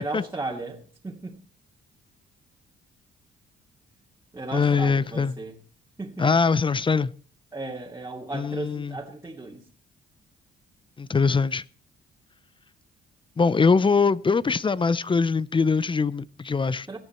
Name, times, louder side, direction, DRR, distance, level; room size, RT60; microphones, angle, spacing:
voice 1, 0.0-1.4 4.3-5.6 6.0-6.3 7.5-9.6 16.9-17.0, right 2 dB, 15° right, 2.5 m, -35 dB
voice 2, 4.5-5.4 6.2-7.1 8.3-9.0 11.0-11.6 13.4-16.9, left 5 dB, 25° left, 0.6 m, -22 dB
18.0 x 13.0 x 4.4 m
cardioid pair, 90°, 20 cm